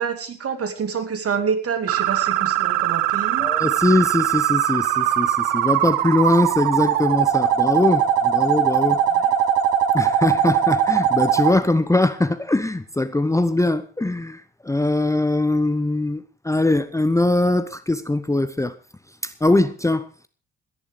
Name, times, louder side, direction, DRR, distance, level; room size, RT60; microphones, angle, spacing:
voice 1, 0.0-3.5 9.1-9.4, right 6 dB, 45° right, 2.6 m, -27 dB
sound 1, 1.9-11.5, right 10 dB, 70° right, 1.0 m, -20 dB
voice 2, 3.4-9.0 9.9-18.7 19.2-20.3, left 2 dB, 10° left, 1.0 m, -21 dB
26.0 x 11.0 x 3.3 m
figure-of-eight pair, 45°, 32 cm